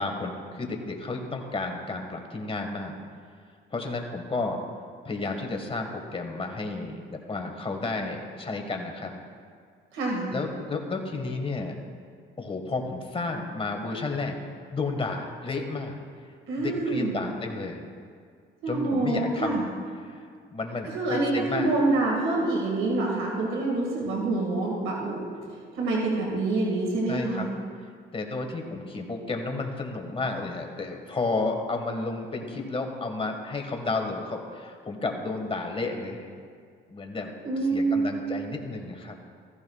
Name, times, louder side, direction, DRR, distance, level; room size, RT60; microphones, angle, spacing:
voice 1, 0.0-3.0 3.7-4.6 5.1-9.1 10.3-11.7 12.4-14.4 14.7-16.0 16.6-17.8 18.7-19.7 20.0-20.1 20.5-21.7 27.1-27.5 28.1-36.3 36.9-37.3 37.7-39.2, left 3 dB, 30° left, 3 dB, 1.6 m, -32 dB
voice 2, 9.9-10.3 16.5-17.2 18.6-19.6 20.8-25.2 25.8-27.5 37.4-38.2, right 2 dB, 85° right, -2 dB, 2.0 m, -26 dB
14.5 x 14.5 x 2.4 m, 2.1 s
cardioid pair, 90°, 20 cm